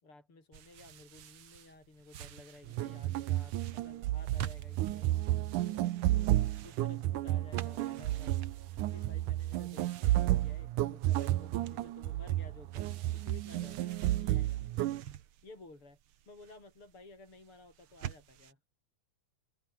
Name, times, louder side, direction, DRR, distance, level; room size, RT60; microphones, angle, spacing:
voice 1, 0.0-5.1 5.5-6.3 6.6-8.4 8.9-14.6 15.4-16.0 16.3-18.6, left 2 dB, 40° left, 7.4 m, -54 dB
sound 1, 0.5-18.5, right 11 dB, 60° right, 1.6 m, -50 dB
sound 2, 2.7-15.0, right 15 dB, 80° right, 2.4 m, -32 dB
omnidirectional pair, 3.6 m